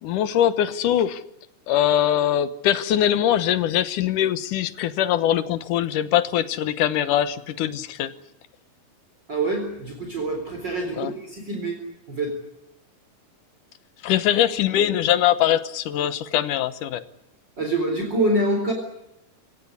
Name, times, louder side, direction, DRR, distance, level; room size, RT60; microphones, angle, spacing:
voice 1, 0.0-1.2 1.7-8.1 10.9-11.1 14.0-17.0, left 11 dB, 75° left, 13 dB, 2.6 m, -22 dB
voice 2, 9.3-11.8 12.1-12.3 17.6-18.7, right 2 dB, 30° right, 3 dB, 4.4 m, -25 dB
24.0 x 18.0 x 9.9 m, 0.87 s
omnidirectional pair, 3.9 m